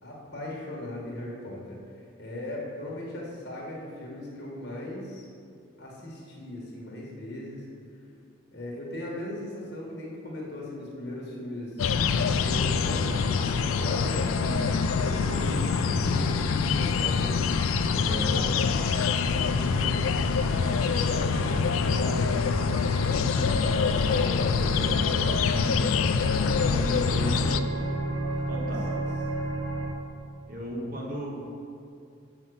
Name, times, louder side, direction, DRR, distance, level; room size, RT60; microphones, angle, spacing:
voice 1, 0.0-5.2 5.8-7.7 8.5-11.8 12.2-14.3 15.0-17.4 17.8-18.5 19.2-21.5 21.9-22.4 22.6-26.6 26.9-27.4 28.1-29.1, left 1 dB, 50° left, -3 dB, 1.4 m, -39 dB
sound 1, 11.8-27.6, left 5 dB, 80° left, 0.3 m, -25 dB
sound 2, 11.9-29.9, right 1 dB, 65° right, 0.7 m, -34 dB
voice 2, 14.4-14.8 17.9-18.7 25.4-26.1 26.4-27.5 28.5-29.0 30.5-31.3, equal, 40° right, -3 dB, 1.5 m, -35 dB
6.8 x 5.7 x 6.2 m, 2.4 s
head